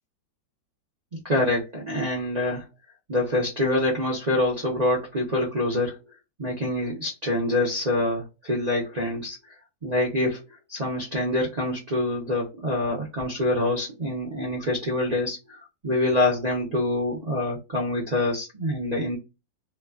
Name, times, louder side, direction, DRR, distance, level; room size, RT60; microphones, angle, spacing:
voice 1, 1.2-2.7 3.1-5.9 6.4-9.4 9.8-10.4 10.7-15.6 15.8-19.2, left 1 dB, 55° right, -4 dB, 0.4 m, -25 dB
3.0 x 2.3 x 2.3 m, 0.24 s
omnidirectional pair, 2.0 m